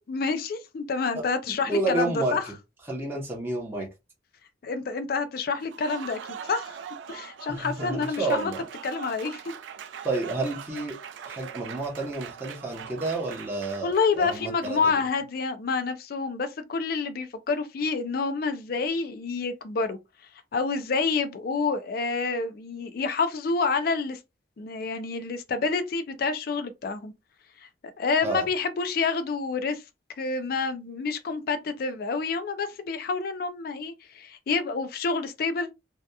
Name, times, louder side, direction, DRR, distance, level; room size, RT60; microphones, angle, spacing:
voice 1, 0.0-2.4 4.6-6.8 7.1-8.5 8.8-9.5 13.8-20.0 20.5-24.2 24.6-27.1 28.0-29.8 30.2-35.7, left 4 dB, 55° left, 0.4 m, -28 dB
voice 2, 1.7-2.4 2.9-3.9 7.5-8.6 10.0-11.0 11.2-15.0 28.2-28.4, right 2 dB, 15° right, 0.7 m, -30 dB
Applause, 5.6-15.0, right 7 dB, 90° right, 0.3 m, -41 dB
2.7 x 2.3 x 2.2 m
head